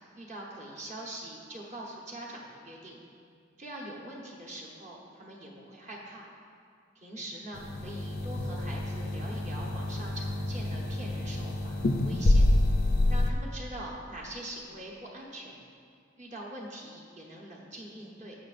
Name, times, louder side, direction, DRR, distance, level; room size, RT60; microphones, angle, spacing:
voice 1, 0.2-3.0 3.6-6.3 7.0-12.5 13.1-15.6 16.2-18.3, right 1 dB, 35° right, -3 dB, 1.0 m, -43 dB
sound 1, 7.5-13.3, left 1 dB, 50° left, 0.5 m, -27 dB
15.0 x 5.7 x 2.5 m, 2.2 s
head